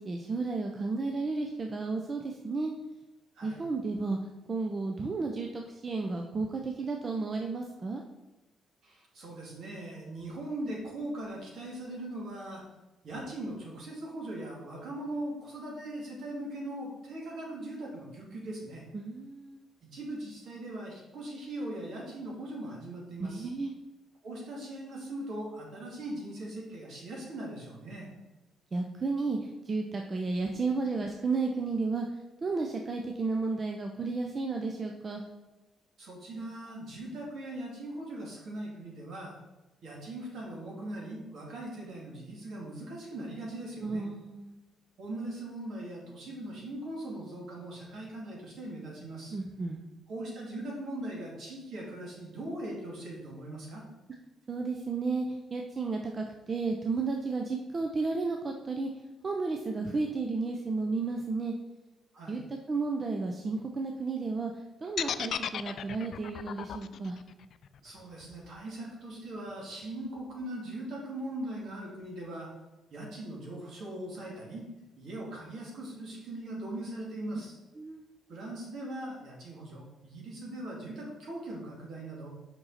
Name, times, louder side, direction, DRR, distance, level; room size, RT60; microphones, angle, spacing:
voice 1, 0.0-2.7 3.4-4.2 4.5-8.0 18.9-19.7 23.2-23.7 28.7-32.1 32.4-35.2 43.8-44.6 49.3-49.8 54.5-58.9 59.2-61.5 62.3-67.2 77.8-78.0, right 3 dB, 35° right, 2 dB, 0.6 m, -33 dB
voice 2, 8.8-12.6 13.0-18.8 19.8-23.5 24.2-28.1 36.0-39.4 39.8-44.0 45.0-49.4 50.1-53.8 62.1-62.5 67.8-72.5 72.9-74.7 75.0-77.5 78.3-82.3, right 1 dB, 65° right, -2 dB, 2.3 m, -40 dB
sound 1, 65.0-69.0, left 8 dB, 65° left, 0.3 m, -36 dB
5.5 x 5.4 x 4.2 m, 1.1 s
cardioid pair, 90°, 0 cm